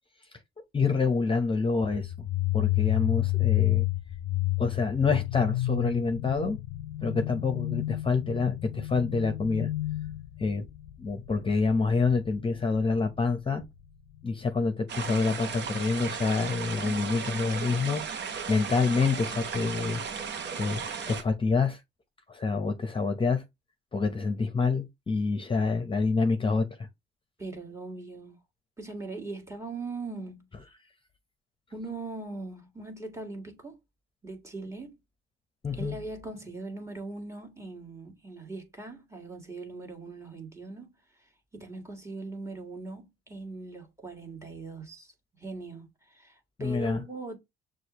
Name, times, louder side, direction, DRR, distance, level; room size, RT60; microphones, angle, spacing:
voice 1, 0.7-2.1 2.5-3.8 4.6-6.6 7.0-9.7 10.4-10.6 11.0-13.6 14.2-20.0 20.6-20.8 21.1-21.8 22.3-23.4 23.9-26.9 35.6-36.0 46.6-47.0, left 4 dB, 25° left, 0.8 m, -27 dB
sound 1, 1.8-13.3, left 18 dB, 75° left, 0.5 m, -30 dB
sound 2, 14.9-21.2, right 6 dB, 60° right, 0.9 m, -35 dB
voice 2, 16.8-17.1 27.4-28.4 28.8-30.4 31.7-33.8 34.2-35.0 35.7-40.9 41.2-47.4, right 3 dB, 15° right, 1.6 m, -40 dB
6.3 x 2.5 x 2.9 m
cardioid pair, 90°, 20 cm